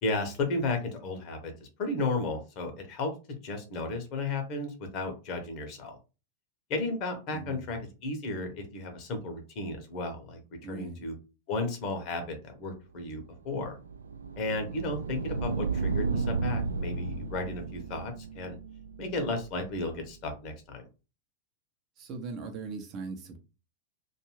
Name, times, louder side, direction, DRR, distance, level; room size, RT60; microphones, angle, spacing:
voice 1, 0.0-3.1 3.4-6.0 6.7-10.4 10.7-11.1 11.5-13.8 14.4-18.6 19.0-20.8, left 2 dB, 40° left, 0.8 m, -34 dB
voice 2, 7.3-7.8 10.6-11.1 22.0-23.4, right 4 dB, 35° right, 0.7 m, -39 dB
sound 1, 13.2-20.1, right 4 dB, 70° right, 0.3 m, -34 dB
2.5 x 2.3 x 3.1 m
figure-of-eight pair, 90°, 0 cm